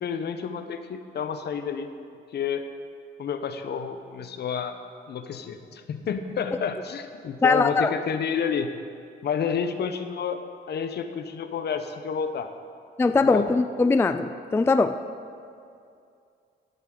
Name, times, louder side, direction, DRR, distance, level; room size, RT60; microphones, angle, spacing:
voice 1, 0.0-1.9 2.3-2.6 3.2-4.8 5.1-8.7 9.2-10.4 10.7-12.5 13.1-13.5, left 7 dB, 55° left, 8 dB, 0.8 m, -30 dB
voice 2, 7.4-7.9 13.0-15.0, left 3 dB, 10° left, 10 dB, 0.3 m, -21 dB
17.5 x 8.0 x 3.8 m, 2.4 s
cardioid pair, 90°, 20 cm